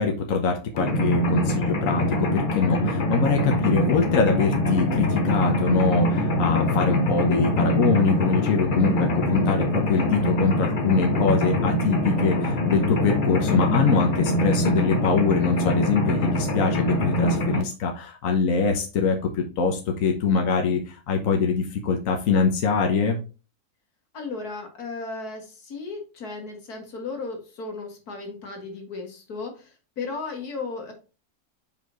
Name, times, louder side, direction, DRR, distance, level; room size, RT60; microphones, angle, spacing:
voice 1, 0.0-23.2, left 5 dB, 60° left, 3 dB, 1.2 m, -23 dB
Mechanisms, 0.8-17.6, equal, 40° left, 1.0 m, -24 dB
voice 2, 24.1-30.9, left 4 dB, 80° left, 2 dB, 2.1 m, -35 dB
5.4 x 4.8 x 3.9 m, 0.33 s
omnidirectional pair, 1.6 m